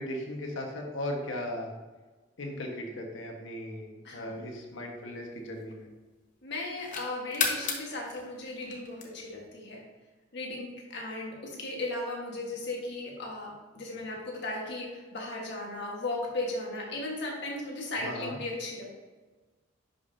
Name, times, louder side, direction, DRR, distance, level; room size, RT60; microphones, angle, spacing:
voice 1, 0.0-1.7 2.4-5.9 18.0-18.4, left 1 dB, 80° left, 1 dB, 1.4 m, -37 dB
voice 2, 4.0-4.5 6.4-9.8 10.3-18.9, left 2 dB, 60° left, -2 dB, 1.6 m, -36 dB
sound 1, 4.3-6.0 6.5-9.5, left 5 dB, 40° left, 1.1 m, -35 dB
10.5 x 5.4 x 2.8 m, 1.3 s
head